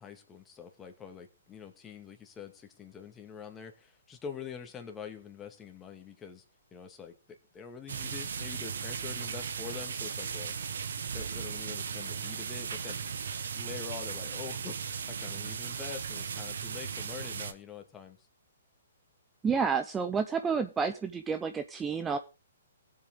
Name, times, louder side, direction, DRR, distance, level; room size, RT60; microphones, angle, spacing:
voice 1, 0.0-6.4 6.7-7.1 7.5-10.5 11.1-13.0 13.5-18.2, left 7 dB, 15° left, 4 dB, 2.2 m, -45 dB
sound 1, 7.9-17.5, right 6 dB, 70° right, 1.4 m, -37 dB
voice 2, 19.4-22.2, right 5 dB, 15° right, 9 dB, 0.7 m, -30 dB
18.0 x 7.9 x 3.8 m, 0.29 s
hypercardioid pair, 130°, 0 cm